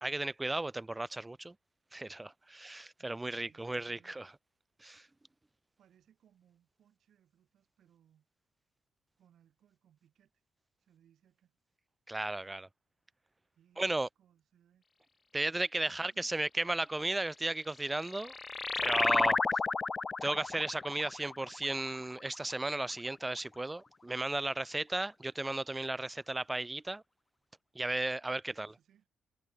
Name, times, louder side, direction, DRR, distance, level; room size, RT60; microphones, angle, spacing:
voice 1, 0.0-1.5 1.9-4.3 4.8-5.1 12.1-12.7 13.8-14.1 15.3-18.4 18.8-19.4 20.2-27.0 27.7-28.7, right 2 dB, 15° right, 0.5 m, -35 dB
voice 2, 3.0-4.1 5.8-8.3 9.2-10.4 10.8-11.6 13.5-14.8 15.9-16.3 28.5-29.1, right 10 dB, 65° right, 8.0 m, -68 dB
sound 1, 17.7-22.8, left 4 dB, 30° left, 0.6 m, -33 dB
cardioid pair, 90°, 0 cm